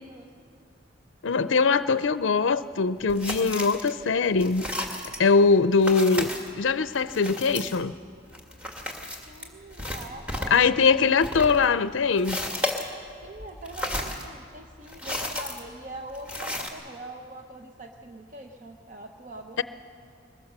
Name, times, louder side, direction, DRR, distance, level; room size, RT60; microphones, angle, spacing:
voice 1, 1.2-4.6 5.2-6.3 6.6-7.9 10.5-12.4, left 4 dB, 75° left, 13 dB, 0.5 m, -22 dB
sound 1, 3.1-3.9 4.2-5.2 5.8-6.5 6.9-10.6 10.9-12.9 13.2-16.7, left 1 dB, 5° right, 1.7 m, -34 dB
voice 2, 9.3-10.7 13.2-19.6, right 1 dB, 40° right, 3 dB, 0.8 m, -42 dB
22.0 x 21.0 x 6.7 m, 2.3 s
head